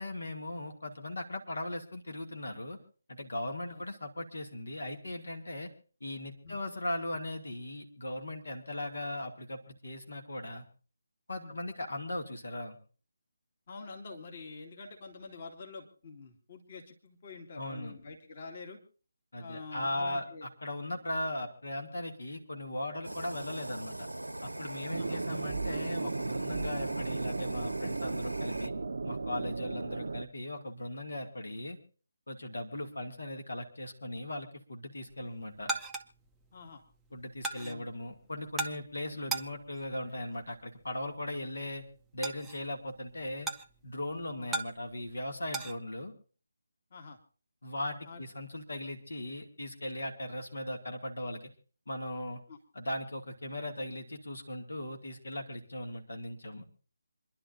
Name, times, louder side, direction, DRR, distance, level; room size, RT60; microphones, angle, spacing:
voice 1, 0.0-2.8 3.1-5.7 6.0-10.6 11.3-12.8 17.6-18.0 19.3-24.1 24.4-28.7 29.0-31.8 32.3-35.7 37.1-41.8 42.1-43.5 43.8-46.1 47.6-51.4 51.9-52.4 52.7-56.6, left 1 dB, 70° left, 4 dB, 2.4 m, -38 dB
voice 2, 13.7-18.8 19.4-20.5 24.9-25.2 32.8-32.9 36.5-36.8 37.6-37.9 44.4-44.5 46.9-47.2 48.0-48.2 52.5-52.6, left 4 dB, 40° left, 3 dB, 2.3 m, -47 dB
Fire, 23.0-28.7, right 1 dB, 85° right, 1.1 m, -41 dB
sound 1, 24.9-30.2, right 3 dB, 60° right, 0.8 m, -35 dB
sound 2, 35.1-45.8, right 2 dB, 5° right, 0.7 m, -41 dB
27.5 x 11.5 x 2.6 m, 0.38 s
figure-of-eight pair, 150°, 0 cm